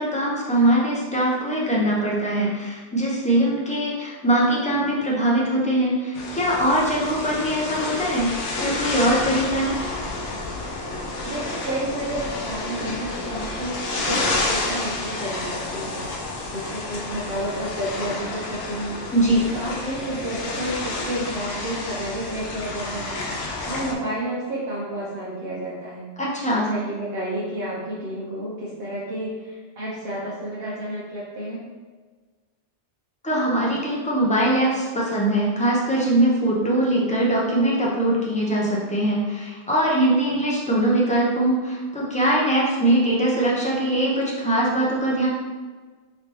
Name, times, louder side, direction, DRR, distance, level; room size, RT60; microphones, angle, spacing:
voice 1, 0.0-9.8 19.1-19.5 26.2-26.7 33.2-45.3, right 1 dB, 10° left, -4 dB, 0.4 m, -22 dB
sound 1, 6.1-24.0, left 2 dB, 90° left, 0.9 m, -30 dB
voice 2, 11.2-16.1 16.5-19.0 19.5-26.1 26.5-31.7, right 1 dB, 60° right, -8 dB, 0.9 m, -31 dB
3.3 x 3.1 x 2.9 m, 1.4 s
omnidirectional pair, 1.2 m